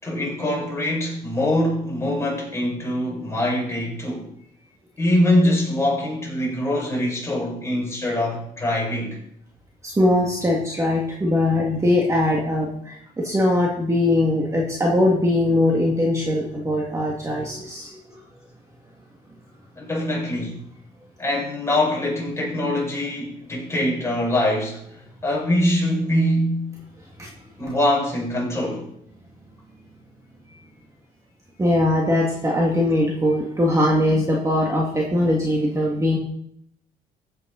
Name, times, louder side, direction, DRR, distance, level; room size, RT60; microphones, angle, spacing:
voice 1, 0.0-4.3 5.0-9.2 19.8-20.6 21.2-24.8 25.2-26.7 27.6-28.9, left 1 dB, 15° left, -3 dB, 5.9 m, -23 dB
voice 2, 9.8-18.2 27.2-27.3 27.7-27.8 31.6-36.2, left 1 dB, 20° right, -2 dB, 2.2 m, -21 dB
15.0 x 8.4 x 4.1 m, 0.70 s
cardioid pair, 110°, 17 cm